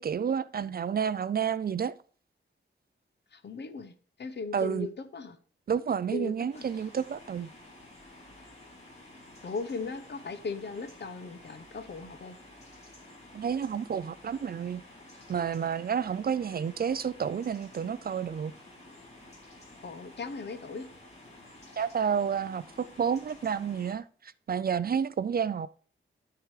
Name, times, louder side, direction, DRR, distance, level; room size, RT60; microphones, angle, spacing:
voice 1, 0.0-1.9 4.5-4.9 5.7-7.5 13.3-14.8 15.3-18.5 21.8-25.7, right 7 dB, 45° right, 0.4 m, -30 dB
voice 2, 3.3-5.4 6.1-6.7 9.4-12.4 19.8-20.9, left 4 dB, 55° left, 1.0 m, -38 dB
sound 1, 6.5-24.0, left 1 dB, 30° left, 3.1 m, -52 dB
12.5 x 4.7 x 4.9 m
wide cardioid pair, 160°, 21 cm